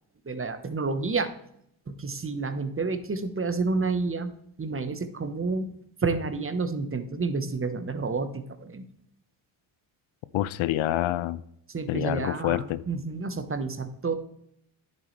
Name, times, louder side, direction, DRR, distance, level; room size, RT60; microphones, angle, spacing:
voice 1, 0.2-1.3 1.9-4.3 4.6-5.7 6.0-8.9 11.7-14.1, right 4 dB, 25° right, 10 dB, 1.1 m, -29 dB
voice 2, 10.3-11.4 11.9-12.8, left 14 dB, 75° left, 17 dB, 0.6 m, -27 dB
9.9 x 7.4 x 3.2 m, 0.72 s
supercardioid pair, 60°, 48 cm